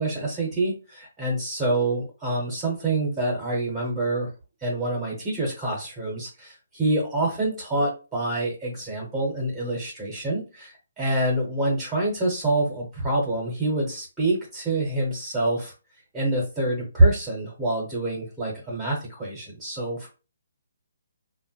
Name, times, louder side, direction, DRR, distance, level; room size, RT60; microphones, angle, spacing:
voice 1, 0.0-4.3 4.6-15.7 16.1-20.1, right 2 dB, 10° right, -4 dB, 0.8 m, -26 dB
3.1 x 2.1 x 2.8 m, 0.32 s
hypercardioid pair, 165°, 0 cm